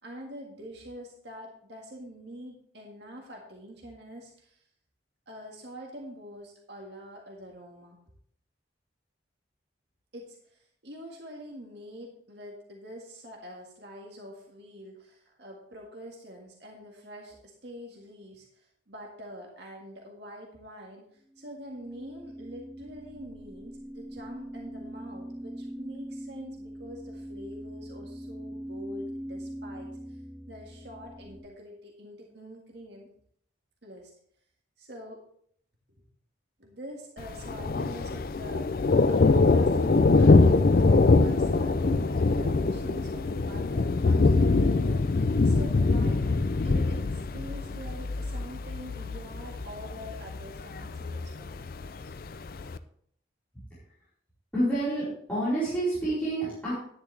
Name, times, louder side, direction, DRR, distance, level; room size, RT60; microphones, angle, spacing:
voice 1, 0.0-4.6 5.3-8.0 10.1-30.2 30.5-33.1 33.8-34.1 34.8-35.2 36.6-51.7, equal, 65° right, 0 dB, 1.8 m, -45 dB
sound 1, 21.3-31.4, equal, 10° right, 1.4 m, -41 dB
Thunder, 37.2-52.8, left 3 dB, 50° left, 0.4 m, -24 dB
voice 2, 54.5-56.7, right 1 dB, 10° left, -13 dB, 4.6 m, -28 dB
10.5 x 10.5 x 3.4 m, 0.64 s
head